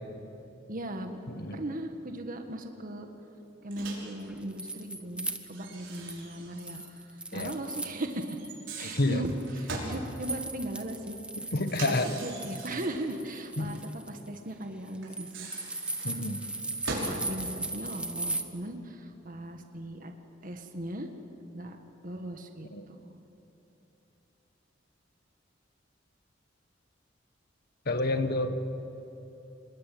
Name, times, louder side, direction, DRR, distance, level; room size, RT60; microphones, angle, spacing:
voice 1, 0.7-1.2 1.5-3.1 3.6-7.0 7.3-8.4 8.8-11.2 11.9-13.8 14.1-15.5 16.2-16.3 16.9-20.1 20.4-21.1 21.5-21.8 22.0-23.2, right 1 dB, 45° right, 5 dB, 1.8 m, -38 dB
voice 2, 1.3-1.6 7.3-7.5 8.8-9.2 11.5-12.1 13.6-13.7 16.0-16.4 22.7-22.9 27.8-28.6, left 2 dB, 55° left, 9 dB, 1.6 m, -29 dB
Microwave oven, 3.7-4.2 5.5-6.9 7.2-7.3 8.4-10.0 11.6-13.0 15.0-17.2, right 2 dB, 80° right, 6.0 m, -40 dB
sound 1, 4.2-6.3 6.6-8.5 8.8-18.4, right 2 dB, 5° right, 1.3 m, -38 dB
27.0 x 21.5 x 9.4 m, 3.0 s
head